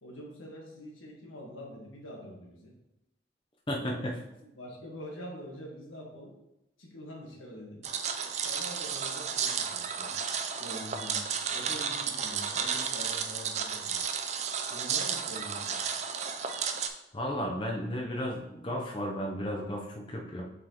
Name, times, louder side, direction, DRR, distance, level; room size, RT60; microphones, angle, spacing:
voice 1, 0.0-2.7 3.8-4.0 4.4-6.3 6.8-7.8 8.4-10.1 10.6-11.2 11.5-14.0 14.7-15.9, equal, 90° left, -2 dB, 1.6 m, -45 dB
voice 2, 3.7-4.1 17.1-20.4, equal, 25° left, 0 dB, 0.6 m, -33 dB
sound 1, 7.8-16.9, right 7 dB, 35° right, 0.4 m, -33 dB
7.7 x 4.2 x 2.9 m, 0.90 s
head